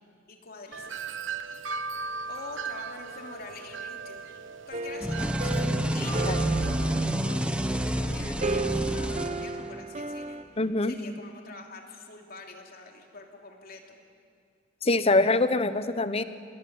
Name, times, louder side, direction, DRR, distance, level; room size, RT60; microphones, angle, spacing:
voice 1, 0.3-1.0 2.3-10.5 10.8-14.0, left 3 dB, 50° left, 2 dB, 3.1 m, -45 dB
Wind chime, 0.7-7.4, right 5 dB, 75° right, 1.1 m, -38 dB
sound 1, 4.7-10.4, right 3 dB, 40° right, 1.0 m, -35 dB
sound 2, 5.0-9.9, right 1 dB, 5° right, 1.1 m, -28 dB
voice 2, 10.6-11.0 14.8-16.2, left 2 dB, 30° left, 12 dB, 1.0 m, -24 dB
27.0 x 20.0 x 9.7 m, 2.2 s
head